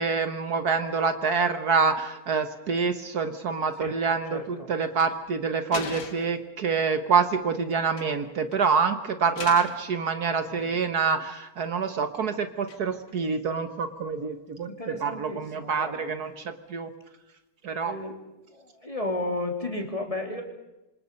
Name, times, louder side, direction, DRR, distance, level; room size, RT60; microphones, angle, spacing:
voice 1, 0.0-16.9 17.6-17.9, right 5 dB, 60° right, 9 dB, 1.7 m, -26 dB
voice 2, 4.3-4.7 14.7-16.1 17.8-18.2 18.5-20.4, left 2 dB, 20° left, 3 dB, 3.3 m, -33 dB
sound 1, 4.9-5.1 5.7-6.4 7.7-8.2 8.5-8.7 9.4-9.9 10.4-11.0 12.7-13.1, left 5 dB, 75° left, 2.5 m, -39 dB
27.0 x 26.0 x 5.4 m, 0.98 s
omnidirectional pair, 1.9 m